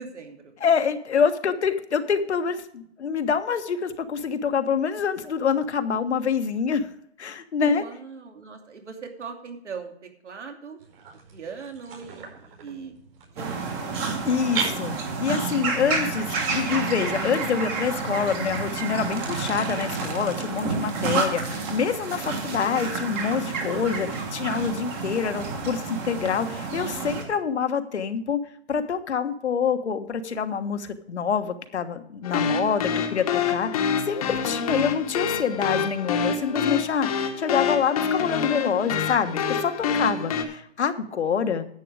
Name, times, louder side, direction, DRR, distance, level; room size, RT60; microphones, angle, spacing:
voice 1, 0.0-0.5 7.6-10.8 11.3-13.0 13.3-14.2 39.9-40.4, right 5 dB, 85° right, 4 dB, 2.8 m, -40 dB
voice 2, 0.6-6.9 7.2-7.8 14.3-28.4 28.7-41.6, left 6 dB, 75° left, 8 dB, 1.4 m, -26 dB
sound 1, 10.8-20.0, right 5 dB, 55° right, 5.0 m, -39 dB
sound 2, 13.4-27.2, right 4 dB, 15° right, 1.3 m, -30 dB
sound 3, 32.2-40.4, left 6 dB, 35° left, 1.2 m, -27 dB
11.0 x 7.8 x 4.8 m, 0.68 s
hypercardioid pair, 160°, 34 cm